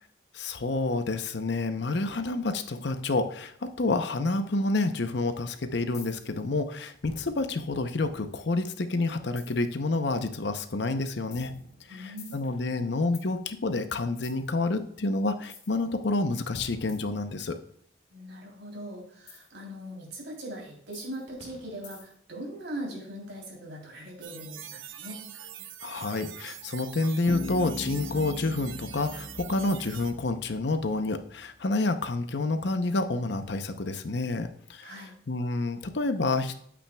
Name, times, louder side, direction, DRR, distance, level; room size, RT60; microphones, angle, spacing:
voice 1, 0.3-11.5 11.9-17.6 25.8-36.6, left 2 dB, 60° left, 9 dB, 0.7 m, -29 dB
sound 1, 5.9-6.4 7.0-8.6 9.4-9.8 10.6-10.8 11.3-13.3 14.2-14.4 15.4-15.8 16.5-17.7 19.3-19.5 20.1-20.2 20.9-22.3, left 3 dB, 35° left, 1.8 m, -48 dB
voice 2, 11.9-12.4 18.1-25.2 34.8-35.1, right 1 dB, 60° right, -1 dB, 3.2 m, -40 dB
sound 2, 24.2-30.1, right 11 dB, 80° right, 0.7 m, -44 dB
Bass guitar, 27.3-31.0, left 2 dB, 85° left, 1.8 m, -40 dB
8.7 x 8.5 x 2.3 m, 0.64 s
head